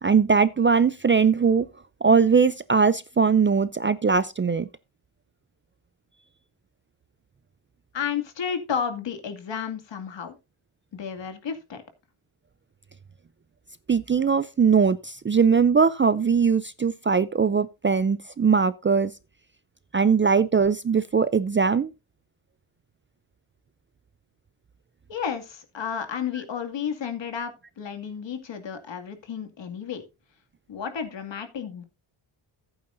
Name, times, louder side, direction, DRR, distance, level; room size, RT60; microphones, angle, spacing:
voice 1, 0.0-1.7 2.0-4.7 13.9-19.1 19.9-21.9, right 5 dB, 25° right, 0.4 m, -20 dB
voice 2, 7.9-10.3 10.9-11.8 25.1-30.0 30.7-31.8, left 7 dB, 60° left, 2.3 m, -32 dB
14.5 x 8.8 x 2.6 m
cardioid pair, 115°, 48 cm